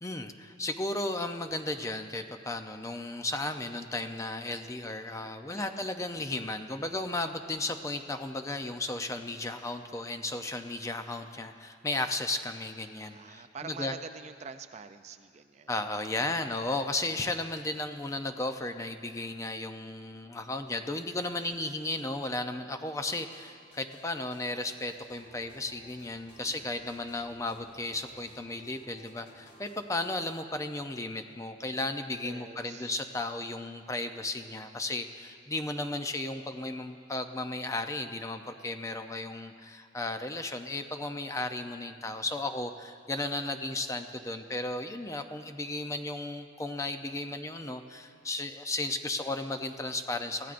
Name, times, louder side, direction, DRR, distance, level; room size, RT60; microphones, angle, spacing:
voice 1, 0.0-13.9 15.7-50.5, left 2 dB, 15° left, 7 dB, 0.5 m, -35 dB
voice 2, 5.5-5.9 13.1-15.7 26.4-26.8 32.2-32.9, right 5 dB, 35° right, 9 dB, 0.4 m, -45 dB
sound 1, 23.1-30.0, equal, 75° left, 2.2 m, -57 dB
24.5 x 15.5 x 2.5 m, 2.2 s
head